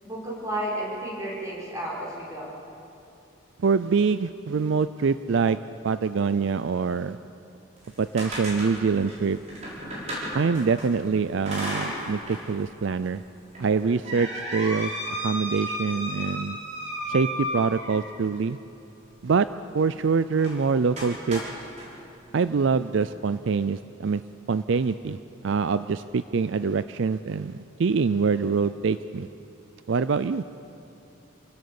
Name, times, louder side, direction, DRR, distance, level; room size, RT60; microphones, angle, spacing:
voice 1, 0.0-2.5, right 1 dB, 15° right, -6 dB, 6.1 m, -32 dB
voice 2, 3.6-5.6 5.8-7.2 8.0-9.4 10.3-13.2 13.6-14.9 15.2-16.6 17.1-18.6 19.2-19.5 19.7-21.4 22.3-24.2 24.5-29.3 29.9-30.4, right 5 dB, 60° right, 13 dB, 0.4 m, -25 dB
sound 1, 7.8-10.9 11.5-12.5 12.8-12.9 13.5-18.2 20.4-20.6 21.0-21.9, equal, 35° right, 5.9 m, -33 dB
28.0 x 17.0 x 7.0 m, 2.8 s
head